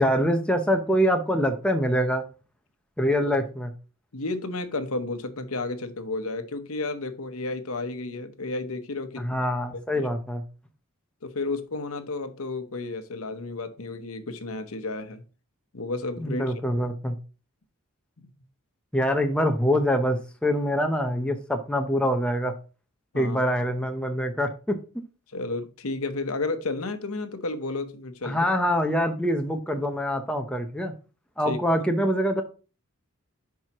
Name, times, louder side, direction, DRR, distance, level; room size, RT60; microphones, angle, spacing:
voice 1, 0.0-2.2 3.0-3.7 9.2-10.4 16.2-17.2 18.9-22.5 23.1-24.8 28.2-30.9 31.4-32.4, equal, 5° left, 4 dB, 0.7 m, -24 dB
voice 2, 4.1-9.4 9.7-10.1 11.2-15.2 15.7-16.4 16.8-16.9 18.2-18.3 23.1-23.4 25.3-28.4 31.4-31.6, left 3 dB, 75° left, 9 dB, 0.9 m, -32 dB
10.5 x 4.7 x 3.0 m, 0.34 s
head